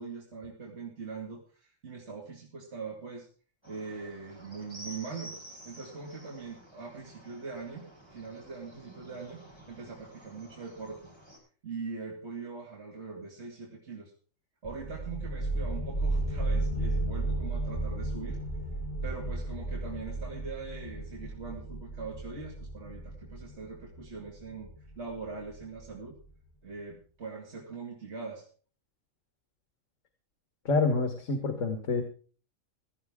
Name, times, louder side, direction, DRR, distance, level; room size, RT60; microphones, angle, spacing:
voice 1, 0.0-3.3 3.7-5.4 5.6-9.4 9.7-11.1 11.6-14.1 14.6-18.4 19.0-26.2 26.6-28.4, right 4 dB, 60° right, -2 dB, 2.8 m, -42 dB
sound 1, 3.6-11.4, equal, 20° right, 4.5 m, -51 dB
sound 2, 14.6-26.1, right 2 dB, 40° left, 5.9 m, -34 dB
voice 2, 30.7-32.0, left 3 dB, 75° left, 7 dB, 1.9 m, -27 dB
16.5 x 13.0 x 3.6 m, 0.40 s
omnidirectional pair, 1.3 m